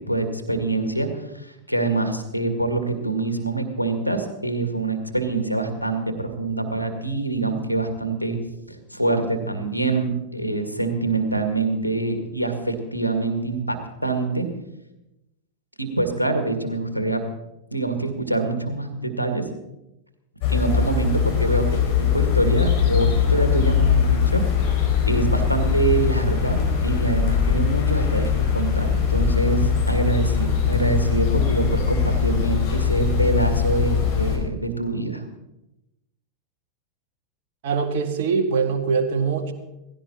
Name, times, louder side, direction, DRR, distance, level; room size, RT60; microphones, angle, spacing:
voice 1, 0.1-8.4 8.7-14.5 15.8-17.2 17.7-19.5 20.5-24.4 25.0-35.2, right 3 dB, 90° right, 8 dB, 1.9 m, -25 dB
sound 1, 20.4-34.4, left 7 dB, 45° left, 4.2 m, -21 dB
voice 2, 37.6-39.5, right 5 dB, 55° right, 5 dB, 2.0 m, -23 dB
18.0 x 16.0 x 4.3 m, 0.92 s
figure-of-eight pair, 90°, 0 cm